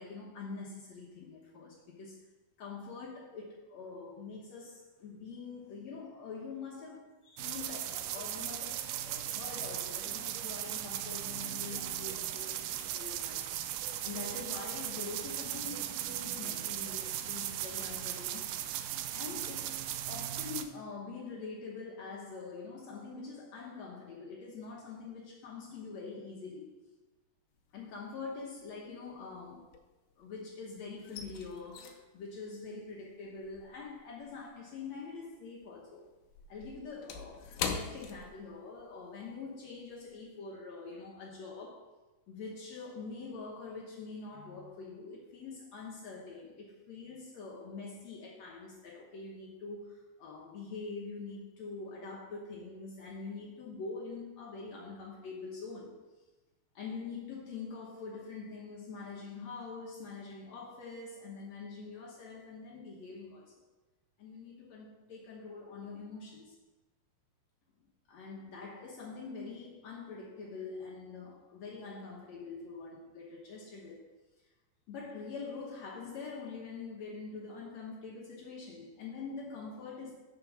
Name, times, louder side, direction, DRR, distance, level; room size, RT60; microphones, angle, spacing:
voice 1, 0.0-2.2 2.6-13.5 14.0-18.5 19.1-19.8 20.1-26.7 27.7-29.7 30.2-36.1 36.5-41.9 42.3-55.9 56.8-63.5 64.2-66.6 68.1-74.0 74.9-80.1, left 4 dB, 60° left, -4 dB, 1.9 m, -44 dB
sound 1, 7.4-20.6, right 12 dB, 80° right, 2.0 m, -37 dB
sound 2, 27.6-28.1 28.4-30.4 30.7-35.4 35.6-38.9 39.3-39.4 39.9-40.2, left 6 dB, 80° left, 2.5 m, -43 dB
8.4 x 4.6 x 6.0 m, 1.1 s
omnidirectional pair, 4.2 m